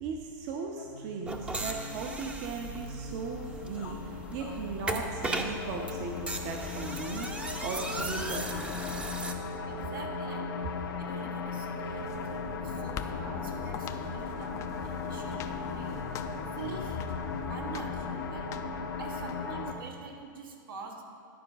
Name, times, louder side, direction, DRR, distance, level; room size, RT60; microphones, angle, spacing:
voice 1, 0.0-8.7 15.3-15.5, right 5 dB, 50° right, 1 dB, 0.8 m, -38 dB
sound 1, 0.8-19.7, left 4 dB, 85° left, 0.9 m, -37 dB
sound 2, 1.3-9.3, right 2 dB, 10° right, 0.6 m, -37 dB
voice 2, 9.7-10.5 10.8-16.0 16.5-17.0 17.3-18.5 19.0-21.0, right 5 dB, 85° right, 1 dB, 1.6 m, -45 dB
sound 3, 11.9-19.3, left 8 dB, 30° left, 0.4 m, -44 dB
11.0 x 4.6 x 5.9 m, 2.4 s
hypercardioid pair, 130°, 11 cm